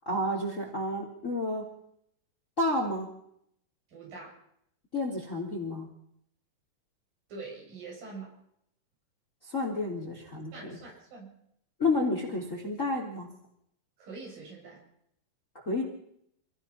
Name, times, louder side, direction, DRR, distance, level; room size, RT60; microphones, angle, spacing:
voice 1, 0.0-1.6 2.6-3.1 4.9-5.9 9.4-10.5 11.8-13.3 15.5-15.8, left 2 dB, 20° left, 2 dB, 3.3 m, -30 dB
voice 2, 3.9-4.4 7.3-8.3 10.5-11.4 14.0-14.8, right 4 dB, 55° right, -2 dB, 9.6 m, -44 dB
27.5 x 17.0 x 5.8 m, 0.71 s
omnidirectional pair, 4.8 m